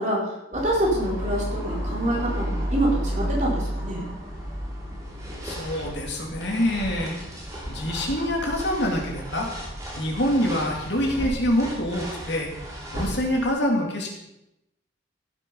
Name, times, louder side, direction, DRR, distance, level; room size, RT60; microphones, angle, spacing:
voice 1, 0.0-4.0, right 1 dB, 35° right, -3 dB, 3.9 m, -26 dB
sound 1, 0.5-13.5, equal, 15° right, 2.7 m, -32 dB
voice 2, 5.4-7.2 7.7-9.5 10.0-12.5 12.9-14.1, equal, 60° left, 0 dB, 2.8 m, -25 dB
15.5 x 7.7 x 5.5 m, 0.89 s
head